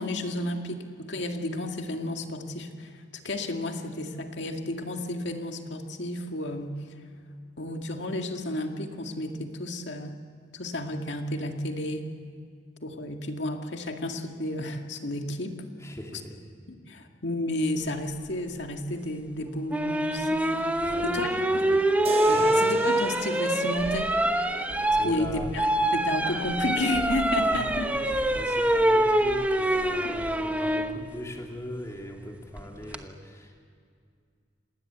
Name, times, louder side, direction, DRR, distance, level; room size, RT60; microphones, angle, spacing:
voice 1, 0.0-6.8 7.6-10.2 10.5-12.1 12.8-15.6 16.1-16.2 16.9-21.9 22.2-24.1 25.0-27.9 30.0-30.2, left 1 dB, 70° left, 4 dB, 2.1 m, -32 dB
voice 2, 15.8-16.4 20.8-21.8 22.3-22.6 25.0-25.5 26.2-26.6 27.4-33.6, equal, 15° left, 1 dB, 3.0 m, -40 dB
sound 1, 19.7-30.9 32.6-33.0, right 1 dB, 10° right, 1.0 m, -25 dB
sound 2, 22.0-26.1, right 3 dB, 30° right, 1.1 m, -39 dB
27.0 x 20.0 x 8.1 m, 2.2 s
head